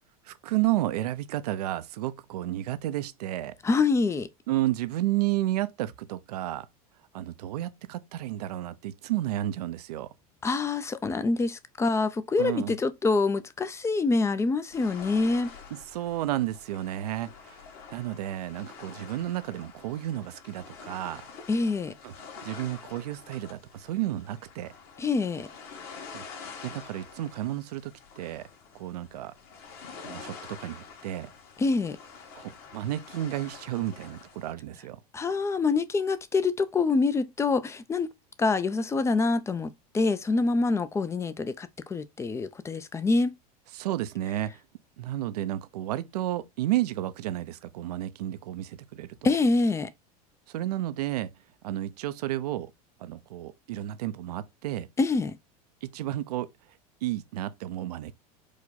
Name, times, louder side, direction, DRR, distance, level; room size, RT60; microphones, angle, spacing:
voice 1, 0.3-3.5 4.5-6.7 7.1-10.1 12.4-12.7 15.7-17.6 17.9-21.2 22.0-22.1 22.4-24.7 26.1-28.4 28.7-29.3 30.0-31.3 32.3-35.0 43.7-44.6 45.0-49.3 50.5-51.3 51.6-52.7 53.0-54.9 55.8-56.5 57.0-58.1, right 14 dB, 85° right, 0.5 m, -32 dB
voice 2, 3.6-4.3 10.4-15.5 21.5-21.9 25.0-25.5 31.6-32.0 35.1-38.1 38.4-43.4 49.2-49.9 55.0-55.4, left 3 dB, 15° left, 0.4 m, -26 dB
sound 1, 14.7-34.5, left 5 dB, 50° left, 1.7 m, -47 dB
4.7 x 2.2 x 4.0 m
supercardioid pair, 115°, 20 cm